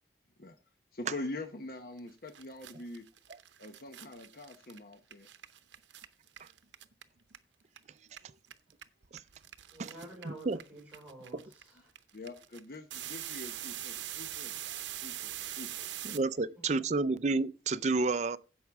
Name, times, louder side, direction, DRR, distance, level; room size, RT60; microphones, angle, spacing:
voice 1, 0.9-3.0 3.6-5.3 12.1-15.9, left 2 dB, 55° left, 0.9 m, -44 dB
sound 1, 2.0-2.1 2.3-7.8 8.1-16.2, right 12 dB, 85° right, 0.7 m, -43 dB
voice 2, 9.7-11.9 16.5-17.0, right 1 dB, 10° right, 4.9 m, -50 dB
voice 3, 10.2-10.6 15.4-15.5 16.0-18.4, right 3 dB, 40° right, 0.4 m, -30 dB
11.0 x 7.2 x 3.5 m
head